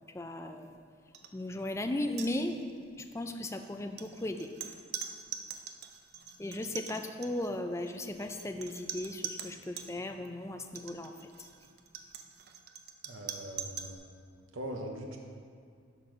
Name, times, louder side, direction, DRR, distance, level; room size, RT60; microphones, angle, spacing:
voice 1, 0.1-0.7 1.3-2.6 3.0-4.5 6.4-11.5, left 1 dB, 15° left, 6 dB, 0.4 m, -36 dB
sound 1, 1.1-1.3 1.6-1.8 2.1-2.8 3.6-9.9 10.6-13.9, right 8 dB, 55° right, 0.6 m, -43 dB
voice 2, 13.0-14.2 14.5-15.2, right 1 dB, 85° right, 2 dB, 0.9 m, -41 dB
12.0 x 4.3 x 5.0 m, 2.2 s
head